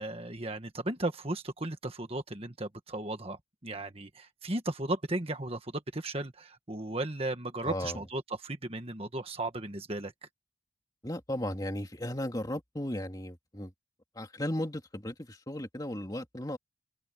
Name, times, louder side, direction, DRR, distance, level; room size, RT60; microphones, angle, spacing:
voice 1, 0.0-10.1, right 2 dB, 30° right, 1.5 m, -35 dB
voice 2, 7.6-8.0 11.0-13.7 14.2-16.6, left 1 dB, 20° left, 2.7 m, -35 dB
open air
head